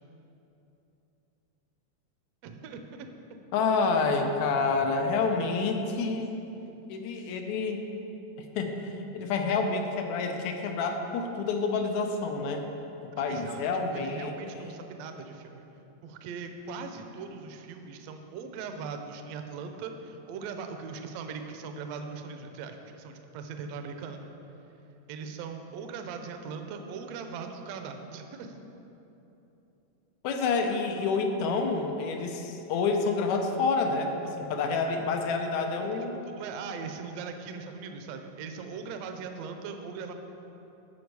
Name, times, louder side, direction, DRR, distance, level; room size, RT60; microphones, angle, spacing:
voice 1, 2.4-3.1 13.2-13.6 13.9-15.6 16.0-24.3 25.1-28.6 35.8-36.0 36.4-40.1, right 5 dB, 75° right, 6 dB, 1.6 m, -40 dB
voice 2, 3.5-6.3 6.9-7.8 8.6-12.7 13.2-14.8 30.2-36.3, left 4 dB, 80° left, 4 dB, 2.0 m, -28 dB
14.0 x 5.2 x 4.7 m, 3.0 s
omnidirectional pair, 3.3 m